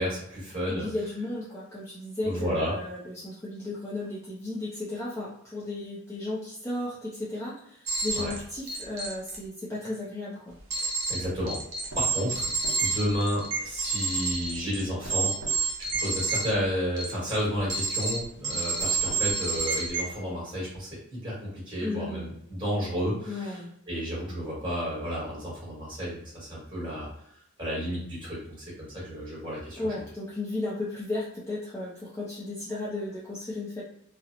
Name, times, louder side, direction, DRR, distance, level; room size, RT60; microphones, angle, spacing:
voice 1, 0.0-0.9 2.2-2.7 8.2-8.3 10.7-11.6 11.9-12.5 12.8-15.7 16.0-23.6 23.9-27.1 27.6-30.0, equal, 20° right, -8 dB, 1.3 m, -32 dB
voice 2, 0.7-10.5 21.8-22.4 23.3-23.7 29.8-33.8, left 2 dB, 15° left, -7 dB, 0.4 m, -34 dB
sound 1, 7.9-8.4 8.7-9.4 10.7-11.2 11.5-16.4 17.0-17.3 17.7-18.2 18.4-20.0, right 4 dB, 75° right, 0.9 m, -29 dB
2.8 x 2.0 x 2.4 m, 0.73 s
head